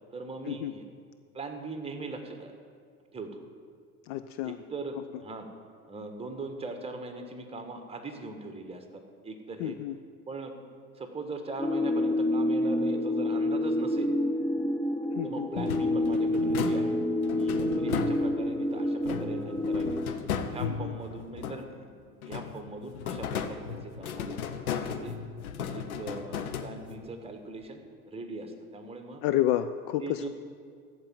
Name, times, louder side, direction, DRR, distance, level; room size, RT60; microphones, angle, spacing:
voice 1, 0.1-0.8 1.3-2.5 3.1-3.4 4.4-5.5 5.9-9.8 10.3-10.5 10.9-14.1 15.2-17.0 17.4-20.2 20.5-21.9 22.2-24.4 24.7-25.2 25.7-29.2 30.0-30.3, right 3 dB, 15° right, 6 dB, 1.4 m, -40 dB
voice 2, 4.1-4.6 9.6-10.0 15.1-15.5 17.7-18.0 20.6-21.0 29.2-30.3, left 13 dB, 45° left, 11 dB, 0.5 m, -30 dB
sound 1, 11.6-20.1, left 1 dB, 5° left, 0.7 m, -28 dB
sound 2, 15.5-18.6 19.0-21.9 22.2-27.1, left 7 dB, 75° left, 0.9 m, -36 dB
14.5 x 4.8 x 9.1 m, 2.1 s
figure-of-eight pair, 80°, 44 cm